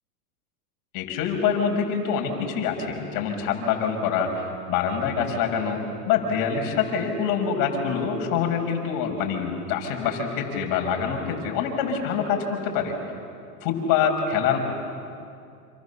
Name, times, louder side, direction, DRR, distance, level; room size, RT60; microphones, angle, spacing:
voice 1, 0.9-12.9 13.6-14.6, left 7 dB, 45° left, 3 dB, 6.0 m, -25 dB
28.5 x 26.5 x 7.1 m, 2.4 s
hypercardioid pair, 125°, 45 cm